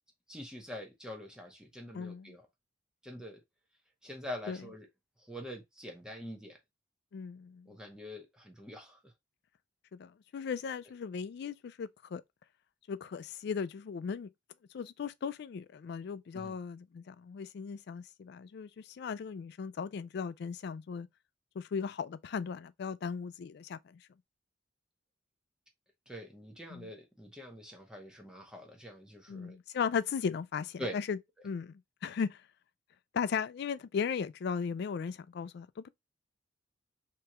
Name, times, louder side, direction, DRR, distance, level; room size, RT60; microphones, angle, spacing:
voice 1, 0.3-2.5 3.0-3.4 4.0-4.9 5.3-6.6 7.7-9.1 16.3-16.6 26.1-29.6 30.8-31.0, left 1 dB, 5° right, 0.8 m, -44 dB
voice 2, 1.9-2.4 4.5-4.6 7.1-7.7 9.9-12.2 12.9-14.3 14.7-21.1 21.6-24.0 26.7-26.9 29.3-31.2 31.4-32.4 33.1-35.9, left 6 dB, 60° left, 0.3 m, -37 dB
3.4 x 2.9 x 2.9 m
head